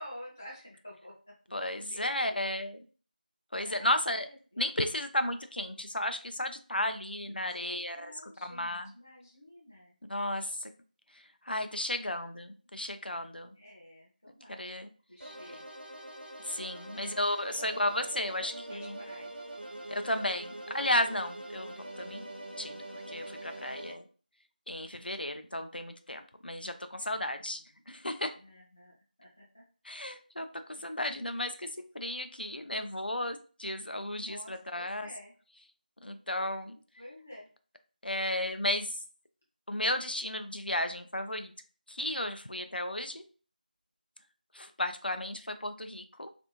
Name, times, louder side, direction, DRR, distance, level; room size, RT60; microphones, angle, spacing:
voice 1, 0.0-1.3 1.7-2.4 3.6-3.9 4.3-4.6 7.2-10.0 13.6-14.7 15.1-15.6 16.9-17.7 18.0-19.3 27.0-27.6 28.4-29.6 34.1-35.3 37.0-37.5, equal, 15° left, -4 dB, 0.4 m, -50 dB
voice 2, 1.5-2.8 3.5-4.3 4.6-8.1 8.4-8.9 10.1-10.7 11.1-13.5 14.5-14.9 16.4-19.0 19.9-22.2 22.6-24.0 24.7-27.6 27.9-28.3 29.8-31.7 31.9-35.1 36.0-36.7 38.0-39.0 39.7-41.5 41.9-43.2 44.5-46.3, left 1 dB, 80° left, 8 dB, 0.5 m, -34 dB
sound 1, 15.2-23.9, right 1 dB, 80° right, 1.0 m, -44 dB
3.3 x 2.6 x 2.9 m, 0.38 s
figure-of-eight pair, 175°, 5 cm